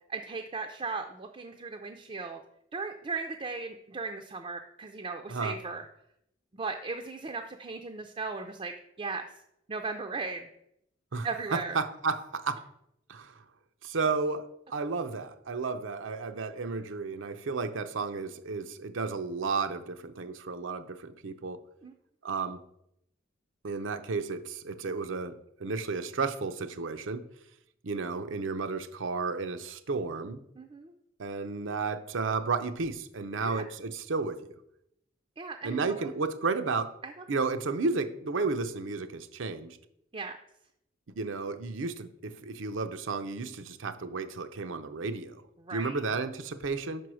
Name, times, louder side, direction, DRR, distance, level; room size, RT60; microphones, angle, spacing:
voice 1, 0.1-2.4 2.7-5.9 6.5-8.7 9.0-9.3 9.7-10.5 11.2-11.8 21.8-21.9 30.6-30.9 33.4-33.6 35.4-36.1 37.0-37.1 40.1-40.4 45.6-46.0, right 4 dB, 30° right, 0.4 m, -37 dB
voice 2, 11.5-12.6 13.1-13.3 13.8-21.6 22.2-22.6 23.6-27.3 27.8-30.4 31.2-34.4 35.6-36.9 37.3-39.8 41.2-45.4 45.7-47.0, right 4 dB, 85° right, 0.6 m, -32 dB
5.4 x 4.6 x 6.2 m
head